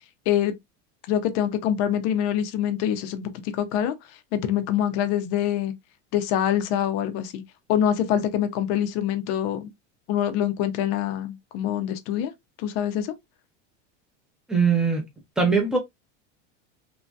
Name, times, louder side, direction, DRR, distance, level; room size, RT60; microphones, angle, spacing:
voice 1, 1.1-3.9 4.3-5.7 6.1-7.4 7.7-9.7 10.1-12.3 12.6-13.1, left 10 dB, 45° left, 0.5 m, -25 dB
voice 2, 14.5-15.0 15.4-15.8, right 5 dB, ahead, 0.5 m, -20 dB
3.0 x 2.6 x 2.3 m
supercardioid pair, 160°, 36 cm